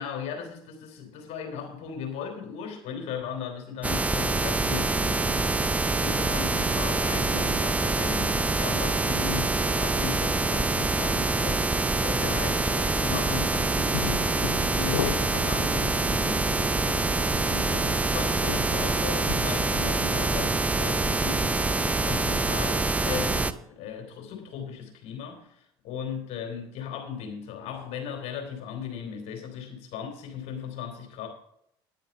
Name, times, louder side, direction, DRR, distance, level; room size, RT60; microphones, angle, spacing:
voice 1, 0.0-31.3, left 7 dB, 60° left, 3.2 m, -37 dB
sound 1, 3.8-23.5, right 2 dB, 10° right, 0.6 m, -26 dB
sound 2, 4.5-23.6, right 7 dB, 75° right, 1.4 m, -40 dB
sound 3, 13.9-19.7, left 10 dB, 85° left, 0.5 m, -37 dB
10.0 x 9.1 x 5.7 m
hypercardioid pair, 70°, 13 cm